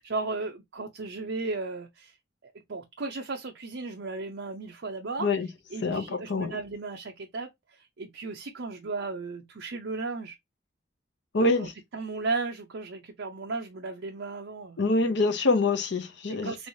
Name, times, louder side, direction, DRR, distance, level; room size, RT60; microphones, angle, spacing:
voice 1, 0.0-2.1 2.4-5.3 5.7-10.4 11.6-14.8 16.3-16.7, right 3 dB, 70° right, 0.6 m, -35 dB
voice 2, 5.8-6.6 11.3-11.7 14.8-16.5, left 3 dB, 65° left, 0.7 m, -25 dB
3.4 x 3.2 x 2.6 m
head